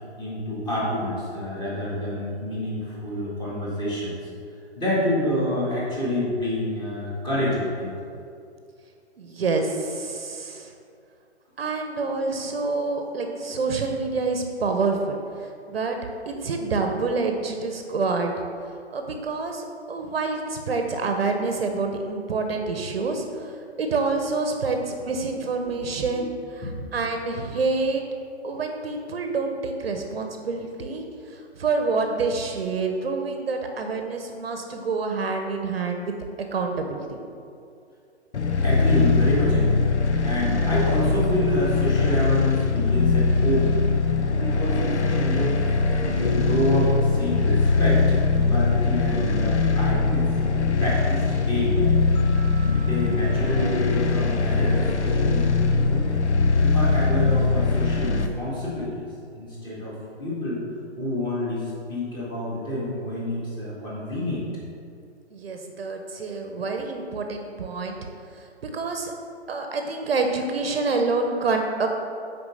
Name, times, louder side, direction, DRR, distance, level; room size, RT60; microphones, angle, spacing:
voice 1, 0.2-4.2 4.8-8.0 25.6-25.8 26.1-26.3 26.6-26.8 38.6-39.9 40.2-52.2 52.6-55.5 55.9-56.0 56.6-59.1 59.4-60.6 61.0-64.5, left 1 dB, 10° left, -7 dB, 2.0 m, -28 dB
voice 2, 9.2-10.7 11.6-15.2 15.7-16.0 16.3-18.3 18.9-23.5 23.8-26.3 26.6-28.0 28.4-31.0 31.6-37.0 65.3-68.0 68.6-69.1 69.5-71.9, right 3 dB, 55° right, 4 dB, 1.0 m, -27 dB
sound 1, 38.3-58.3, left 4 dB, 75° left, 0.9 m, -21 dB
sound 2, 52.1-55.3, right 6 dB, 35° left, 1.2 m, -48 dB
6.5 x 5.0 x 6.5 m, 2.4 s
figure-of-eight pair, 140°, 34 cm